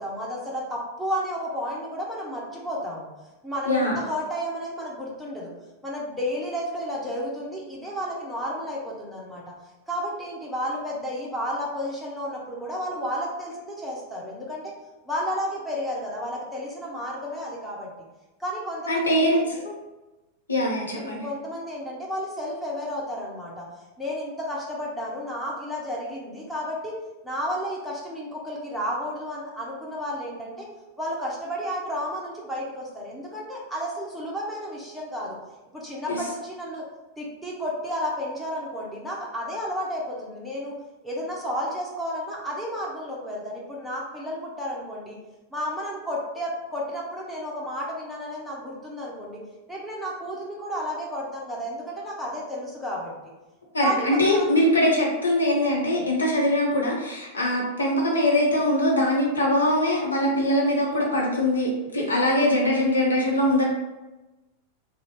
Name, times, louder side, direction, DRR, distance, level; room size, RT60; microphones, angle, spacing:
voice 1, 0.0-3.1 3.4-5.5 5.8-9.4 9.9-14.7 15.1-17.9 18.4-19.6 20.9-23.7 24.0-30.7 31.0-35.4 35.7-36.8 37.2-40.8 41.0-45.2 45.5-49.4 49.7-53.1 53.8-54.5 55.8-56.1 63.2-63.5, equal, ahead, -5 dB, 0.6 m, -32 dB
voice 2, 3.7-4.0 18.9-19.7 20.5-21.2 36.1-36.2 53.7-63.6, left 1 dB, 75° left, -2 dB, 0.7 m, -22 dB
2.6 x 2.0 x 3.0 m, 1.1 s
figure-of-eight pair, 90°, 0 cm